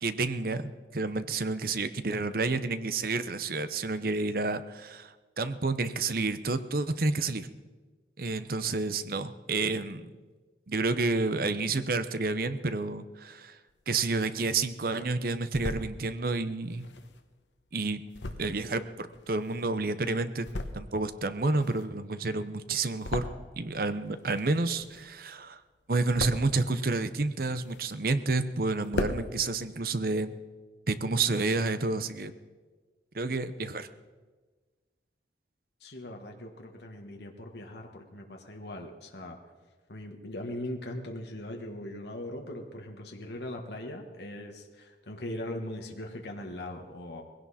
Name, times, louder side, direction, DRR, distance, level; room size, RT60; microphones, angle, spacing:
voice 1, 0.0-7.5 8.2-10.1 10.7-13.6 13.9-16.9 17.7-18.0 18.4-20.5 20.7-23.2 23.6-25.6 25.9-30.3 30.9-32.3 33.1-33.9, right 3 dB, 55° right, 12 dB, 0.8 m, -30 dB
sound 1, 13.7-14.7 15.2-15.9 16.6-19.9 20.3-21.1 21.3-23.8 24.1-25.3 25.6-26.6 27.2-28.2 28.5-28.6 28.8-29.2, left 2 dB, 85° left, 1.1 m, -38 dB
voice 2, 35.8-39.4 39.9-47.2, left 1 dB, 70° left, 2 dB, 1.5 m, -40 dB
20.0 x 16.5 x 4.2 m, 1.3 s
head